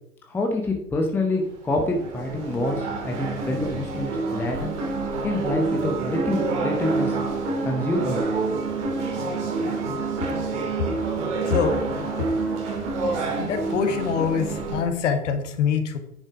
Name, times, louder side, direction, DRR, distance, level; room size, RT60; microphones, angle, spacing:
voice 1, 0.3-4.7 5.2-7.2 7.6-8.2 8.9-9.0 9.4-9.5, left 2 dB, 5° left, 3 dB, 0.7 m, -27 dB
sound 1, 1.7-14.8, right 3 dB, 50° right, 3.0 m, -27 dB
voice 2, 13.4-16.0, left 7 dB, 50° left, 7 dB, 1.6 m, -24 dB
9.8 x 6.3 x 4.9 m, 0.77 s
figure-of-eight pair, 110°, 45 cm